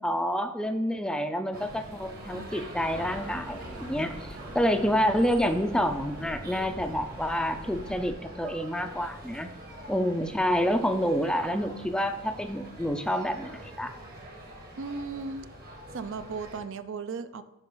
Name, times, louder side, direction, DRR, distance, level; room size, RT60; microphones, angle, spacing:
voice 1, 0.0-9.5 9.9-13.5 13.8-13.9, equal, 5° left, 8 dB, 0.4 m, -28 dB
sound 1, 1.5-16.6, right 1 dB, 45° right, 1.4 m, -45 dB
sound 2, 2.8-8.1, right 1 dB, 80° right, 1.7 m, -44 dB
voice 2, 14.8-15.5 15.9-17.4, right 4 dB, 60° right, 12 dB, 0.5 m, -36 dB
10.5 x 4.8 x 3.8 m, 0.96 s
head